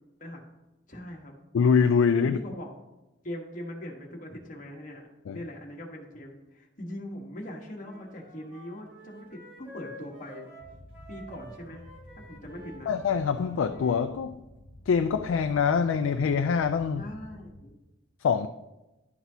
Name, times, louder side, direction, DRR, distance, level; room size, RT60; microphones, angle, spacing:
voice 1, 0.9-1.3 2.2-2.7 3.2-5.1 5.3-10.5 11.1-11.9 12.2-12.9 17.0-17.7, left 1 dB, 40° left, 1.2 m, -41 dB
voice 2, 1.5-2.4 5.3-5.4 12.9-14.4 14.9-17.1 18.2-18.5, left 6 dB, 90° left, 0.3 m, -24 dB
Wind instrument woodwind instrument, 7.7-14.1, right 1 dB, 10° right, 2.7 m, -50 dB
sound 1, 10.6-17.7, left 1 dB, 70° left, 1.0 m, -50 dB
11.0 x 6.0 x 2.7 m
head